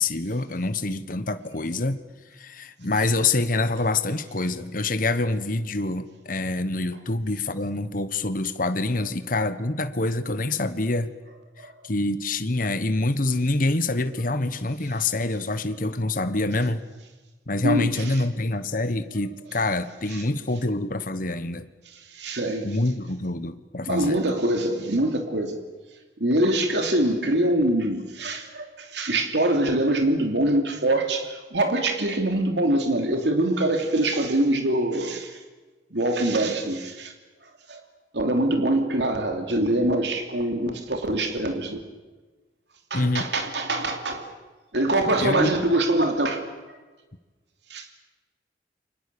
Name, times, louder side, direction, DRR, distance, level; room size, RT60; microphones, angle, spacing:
voice 1, 0.0-2.0 2.4-11.1 11.8-16.8 17.5-21.7 22.6-24.2 42.9-43.3 45.2-45.5, left 2 dB, 50° left, 11 dB, 1.3 m, -26 dB
voice 2, 17.6-18.2 20.1-20.2 22.1-22.7 23.9-25.6 26.2-35.4 35.9-37.1 37.7-37.8 38.1-41.8 42.9-44.3 44.7-46.4 47.7-48.0, right 1 dB, 75° right, 4 dB, 2.9 m, -24 dB
29.5 x 25.0 x 7.0 m, 1.2 s
head